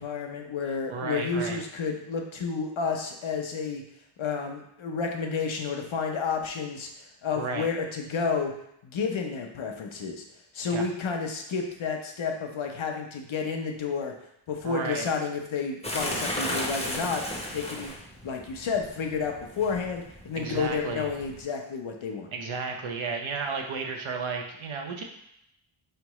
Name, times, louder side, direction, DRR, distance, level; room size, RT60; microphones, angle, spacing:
voice 1, 0.0-3.8 4.2-8.5 8.8-10.2 10.5-14.1 14.5-17.2 17.5-17.9 18.2-22.3, left 5 dB, 70° left, 3 dB, 0.8 m, -31 dB
voice 2, 0.9-1.6 7.3-7.7 10.7-10.9 14.6-15.1 20.4-21.1 22.3-25.0, right 4 dB, 70° right, 3 dB, 0.8 m, -33 dB
sound 1, 15.8-21.4, left 1 dB, 15° left, 0.7 m, -35 dB
4.6 x 3.3 x 3.0 m, 0.76 s
wide cardioid pair, 130°, 49 cm